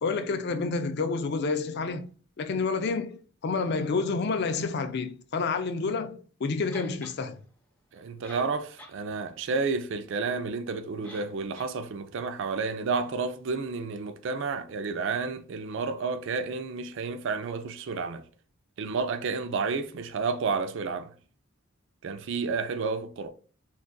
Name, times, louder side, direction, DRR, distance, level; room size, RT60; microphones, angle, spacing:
voice 1, 0.0-2.1 2.4-7.4, left 4 dB, 55° left, 0.4 m, -29 dB
sound 1, 6.7-7.2 8.0-8.1 8.2-9.0 9.3-9.4 11.0-11.3 11.6-11.7, equal, 5° left, 0.7 m, -47 dB
voice 2, 7.9-18.2 18.8-21.1 22.0-23.3, right 4 dB, 65° right, 0.4 m, -31 dB
3.7 x 2.3 x 2.3 m
head